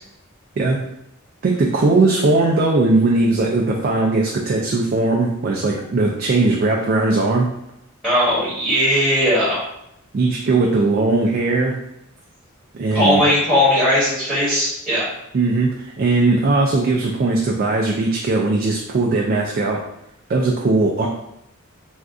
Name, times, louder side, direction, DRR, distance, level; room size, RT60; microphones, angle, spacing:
voice 1, 1.4-7.5 10.1-11.7 12.7-13.2 15.3-19.8 20.3-21.1, right 3 dB, 45° right, -1 dB, 0.3 m, -19 dB
voice 2, 8.0-9.6 12.9-15.1, left 1 dB, ahead, -13 dB, 1.2 m, -18 dB
2.5 x 2.3 x 3.5 m, 0.78 s
head